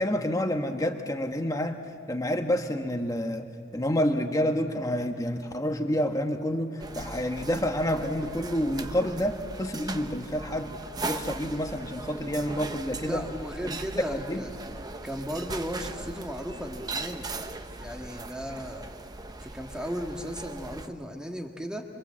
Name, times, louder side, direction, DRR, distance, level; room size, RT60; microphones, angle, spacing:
voice 1, 0.0-1.8 2.1-3.5 3.7-10.7 11.0-13.2 13.6-13.8 14.1-14.4, equal, 15° left, 5 dB, 1.2 m, -28 dB
sound 1, 6.8-20.9, right 2 dB, 20° right, 0.8 m, -39 dB
voice 2, 13.0-14.6 15.0-17.3 17.8-18.9 19.4-21.8, equal, 5° right, 2 dB, 1.8 m, -36 dB
27.0 x 24.0 x 7.5 m, 2.7 s
head